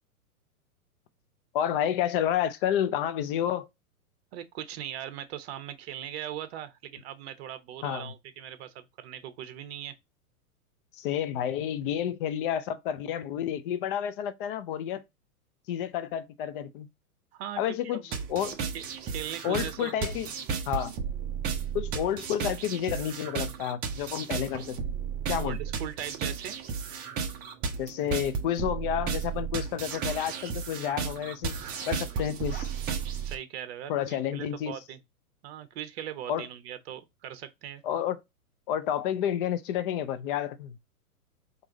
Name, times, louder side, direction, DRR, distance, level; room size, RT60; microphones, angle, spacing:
voice 1, 1.5-3.7 7.8-8.1 11.0-15.0 15.7-16.9 17.6-18.6 19.4-20.3 20.7-20.9 21.7-24.9 25.3-25.6 27.8-31.6 31.9-32.7 33.9-34.8 36.3-36.5 37.8-38.2 38.7-40.8, left 10 dB, 35° left, 0.6 m, -30 dB
voice 2, 4.3-9.9 17.3-18.0 18.7-20.1 25.4-26.6 33.3-35.0 35.4-37.8, right 10 dB, 45° right, 0.9 m, -40 dB
sound 1, 18.1-33.4, right 6 dB, 20° right, 0.6 m, -34 dB
4.7 x 2.6 x 3.8 m
hypercardioid pair, 115°, 46 cm